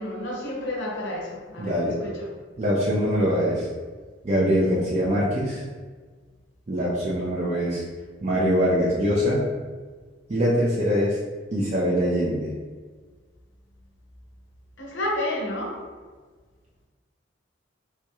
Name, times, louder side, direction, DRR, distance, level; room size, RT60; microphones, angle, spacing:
voice 1, 0.0-1.7 2.0-2.3 14.8-15.8, left 1 dB, 70° left, -1 dB, 0.7 m, -30 dB
voice 2, 1.6-2.0 2.6-3.7 4.2-5.6 6.7-7.8 8.2-9.5 10.3-11.2 11.5-12.5, equal, 35° right, -7 dB, 0.5 m, -23 dB
4.5 x 2.7 x 2.3 m, 1.4 s
head